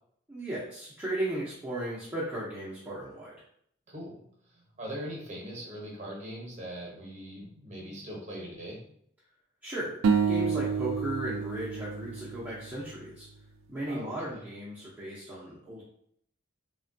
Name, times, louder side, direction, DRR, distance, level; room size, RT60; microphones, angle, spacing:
voice 1, 0.3-3.4 9.6-10.0 10.3-13.3 13.7-15.8, right 1 dB, 5° right, -10 dB, 0.5 m, -36 dB
voice 2, 3.9-4.4 4.8-8.8 13.9-14.4, equal, 35° right, -2 dB, 0.8 m, -41 dB
sound 1, 10.0-13.3, right 6 dB, 70° right, 0.3 m, -29 dB
3.3 x 2.1 x 2.6 m, 0.67 s
head